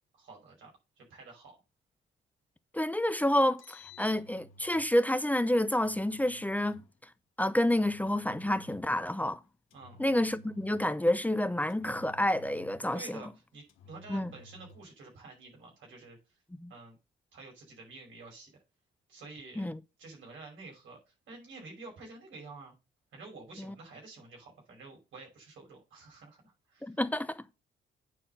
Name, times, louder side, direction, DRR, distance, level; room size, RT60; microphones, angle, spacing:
voice 1, 0.1-0.7 1.0-1.5 9.7-10.0 12.9-16.4 16.7-17.0 17.3-18.5 19.1-19.7 20.0-22.7 23.1-27.0, right 3 dB, 75° right, 5.5 m, -49 dB
voice 2, 2.7-6.8 7.4-9.4 10.0-13.2 14.1-14.3 16.6-16.7 19.6-19.8 26.8-27.5, left 1 dB, 10° left, 0.6 m, -29 dB
Engine, 3.6-4.9 5.7-6.9 7.7-9.0 9.7-11.0 11.7-13.0 13.7-14.9, left 1 dB, 85° left, 1.5 m, -55 dB
9.1 x 4.3 x 6.7 m
cardioid pair, 90°, 20 cm